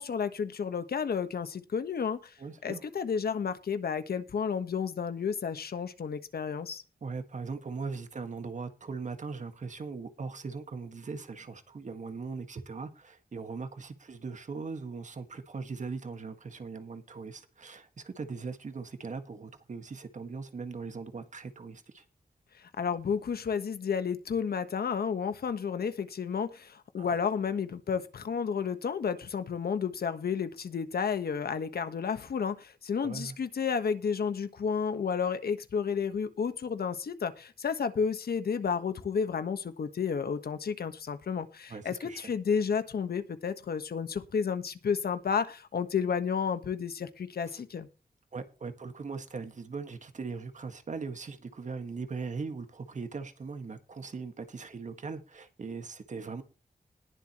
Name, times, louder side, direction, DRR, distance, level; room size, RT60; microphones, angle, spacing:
voice 1, 0.0-2.3 2.6-6.8 22.8-47.9, left 6 dB, 85° left, 1.4 m, -31 dB
voice 2, 2.4-2.8 7.0-22.0 27.0-27.2 33.0-33.4 41.7-42.3 47.5-47.6 48.3-56.4, right 4 dB, 50° right, 1.8 m, -40 dB
20.0 x 7.5 x 3.1 m
wide cardioid pair, 150°, 16 cm